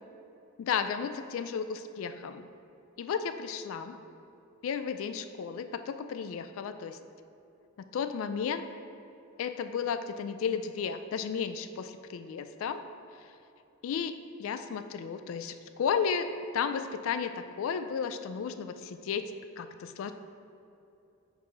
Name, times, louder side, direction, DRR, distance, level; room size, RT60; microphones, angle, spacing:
voice 1, 0.6-2.5 3.0-4.0 4.6-7.0 7.9-8.6 9.4-12.8 13.8-20.1, left 6 dB, 65° left, 10 dB, 0.3 m, -33 dB
5.6 x 4.8 x 4.7 m, 2.8 s
head